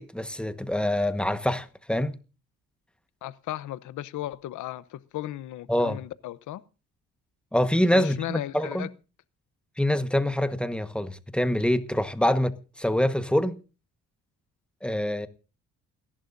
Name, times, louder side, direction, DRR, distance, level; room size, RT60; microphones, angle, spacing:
voice 1, 0.0-2.1 5.7-6.0 7.5-8.9 9.8-13.6 14.8-15.3, left 1 dB, 5° left, 1.3 m, -25 dB
voice 2, 3.2-6.6 7.9-8.9, left 14 dB, 80° left, 0.9 m, -35 dB
29.0 x 11.5 x 2.6 m
cardioid pair, 90°, 30 cm